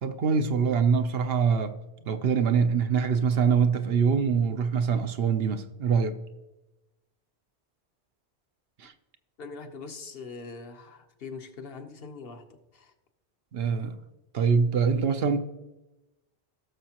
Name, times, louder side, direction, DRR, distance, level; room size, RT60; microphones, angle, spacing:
voice 1, 0.0-1.8 2.1-6.2 8.8-8.9 13.5-14.0 14.3-15.4, right 6 dB, 65° right, 0.8 m, -24 dB
voice 2, 9.4-12.4 12.7-12.9, left 4 dB, 65° left, 1.0 m, -42 dB
17.5 x 6.4 x 2.9 m
omnidirectional pair, 1.1 m